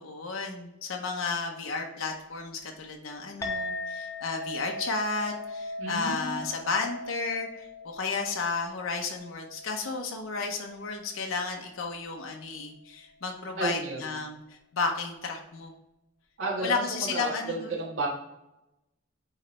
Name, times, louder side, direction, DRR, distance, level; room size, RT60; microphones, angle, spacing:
voice 1, 0.0-15.7 16.6-17.7, left 4 dB, 75° left, 2 dB, 0.8 m, -33 dB
Chink clink, 3.4-12.1, left 2 dB, 15° left, 1.0 m, -40 dB
voice 2, 5.8-6.4 13.6-14.1 16.4-18.1, right 2 dB, 75° right, -3 dB, 1.6 m, -32 dB
9.1 x 3.2 x 3.2 m, 0.92 s
head